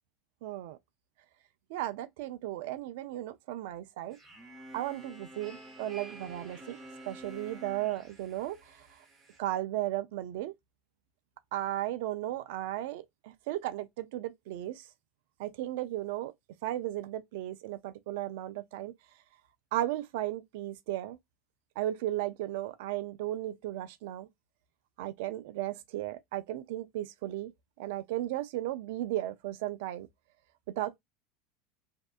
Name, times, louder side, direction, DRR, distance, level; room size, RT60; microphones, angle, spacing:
voice 1, 0.4-0.8 1.7-4.2 4.7-6.8 7.1-8.9 9.4-10.5 11.5-14.9 15.4-16.3 16.6-18.9 19.7-21.2 21.8-24.3 25.0-27.5 27.8-30.1 30.8-31.0, right 14 dB, 70° right, 0.3 m, -35 dB
sound 1, 4.1-9.4, right 2 dB, 30° right, 1.1 m, -49 dB
2.6 x 2.1 x 2.3 m
hypercardioid pair, 90°, 0 cm